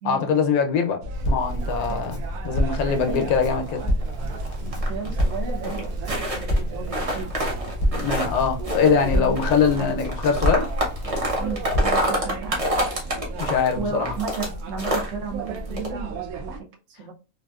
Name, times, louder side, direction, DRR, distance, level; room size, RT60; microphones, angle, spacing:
voice 1, 0.0-1.0 1.3-3.8 5.6-5.7 7.9-10.7 13.4-14.1, left 6 dB, 80° left, 1.1 m, -23 dB
sound 1, 1.0-16.6, right 2 dB, 85° right, 1.1 m, -34 dB
Crackle, 1.1-12.0, equal, 15° left, 0.6 m, -28 dB
voice 2, 2.7-3.3 4.6-7.3 8.7-9.4 9.7-9.9 11.4-12.6 13.7-17.1, right 5 dB, 65° right, 1.0 m, -34 dB
sound 2, 3.5-5.4 5.6-6.6 6.9-8.4 8.6-14.5 14.8-15.1 15.5-15.9, equal, 35° right, 0.7 m, -27 dB
3.4 x 2.5 x 2.3 m
omnidirectional pair, 1.5 m